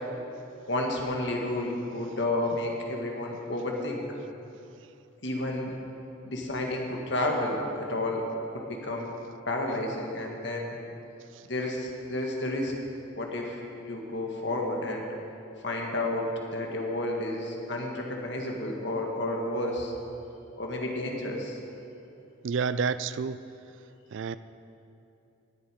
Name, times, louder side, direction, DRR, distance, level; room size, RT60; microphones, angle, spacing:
voice 1, 0.7-4.0 5.2-5.7 6.2-9.1 9.5-10.8 11.4-12.7 13.2-15.1 15.6-19.9 20.6-21.6, left 1 dB, 60° left, 0 dB, 1.8 m, -31 dB
voice 2, 22.4-23.4 24.1-24.4, right 5 dB, 70° right, 14 dB, 0.4 m, -29 dB
19.0 x 8.0 x 5.2 m, 2.8 s
head